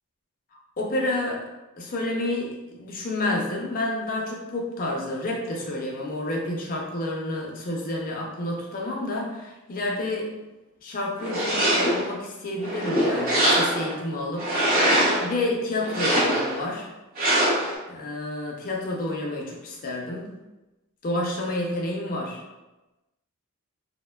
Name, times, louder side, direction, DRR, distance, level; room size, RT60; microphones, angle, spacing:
voice 1, 0.8-1.4 1.8-10.3 10.8-14.5 14.9-16.9 17.9-20.3 21.0-22.4, left 1 dB, 40° left, -1 dB, 0.5 m, -29 dB
sound 1, 11.2-12.1 12.6-13.9 14.4-15.3 15.8-16.6 17.2-17.7, right 1 dB, 45° right, 0.7 m, -23 dB
3.0 x 2.1 x 2.2 m, 1.1 s
head